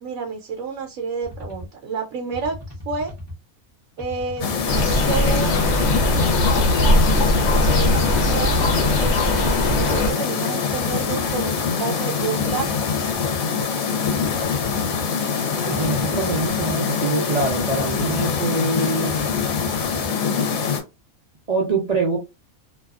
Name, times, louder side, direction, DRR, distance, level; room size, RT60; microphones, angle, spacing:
voice 1, 0.0-3.1 4.0-5.6 6.7-7.3 7.7-8.1 8.3-12.8 13.6-13.9, right 5 dB, 70° right, 2 dB, 1.0 m, -30 dB
sound 1, 1.2-1.7 2.3-3.4 4.0-5.0 5.7-6.7 7.3-8.4 9.0-10.1 10.7-11.7 12.4-13.4 14.0-15.1 15.7-16.8 17.4-18.4 19.1-20.1, left 2 dB, 15° left, 0.7 m, -36 dB
sound 2, 4.4-20.8, left 6 dB, 80° left, 1.1 m, -24 dB
sound 3, 4.7-10.1, left 1 dB, 60° left, 0.9 m, -20 dB
voice 2, 15.6-19.1 21.5-22.2, right 3 dB, 50° right, -2 dB, 0.4 m, -24 dB
2.6 x 2.3 x 2.3 m, 0.25 s
omnidirectional pair, 1.5 m